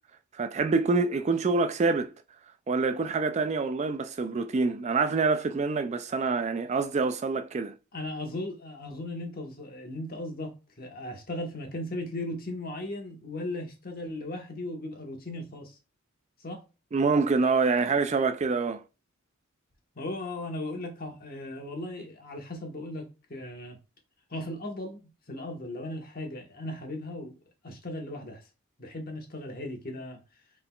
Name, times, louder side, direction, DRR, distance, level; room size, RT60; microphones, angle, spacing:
voice 1, 0.3-2.1 2.7-7.7 16.9-18.8, right 4 dB, 30° right, 0.3 m, -26 dB
voice 2, 7.9-15.8 16.4-16.6 19.9-23.8 24.3-27.3 27.6-28.5 28.8-30.2, left 1 dB, 45° left, 1.2 m, -37 dB
5.6 x 3.7 x 2.3 m
head